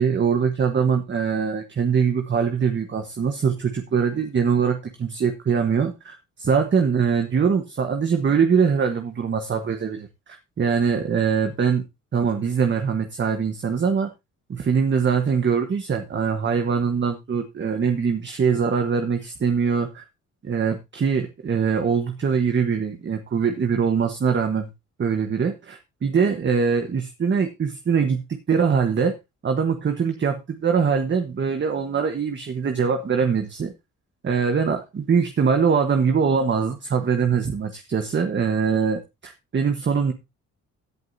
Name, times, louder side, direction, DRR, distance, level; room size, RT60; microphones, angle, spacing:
voice 1, 0.0-11.8 12.1-14.1 14.5-20.1 20.4-24.7 25.0-29.1 29.4-33.7 34.2-40.1, right 6 dB, 40° right, 6 dB, 1.3 m, -22 dB
16.5 x 7.8 x 2.7 m, 0.23 s
cardioid pair, 90°, 30 cm